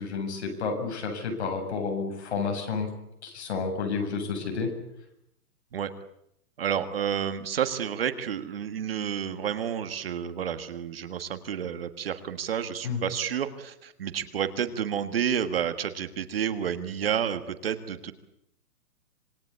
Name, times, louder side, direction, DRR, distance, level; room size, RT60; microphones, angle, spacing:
voice 1, 0.0-2.9 3.2-4.7 12.8-13.0, left 5 dB, 45° left, 3 dB, 7.7 m, -30 dB
voice 2, 6.6-18.1, right 8 dB, 40° right, 10 dB, 1.5 m, -30 dB
26.5 x 21.5 x 8.5 m, 0.78 s
hypercardioid pair, 180°, 45 cm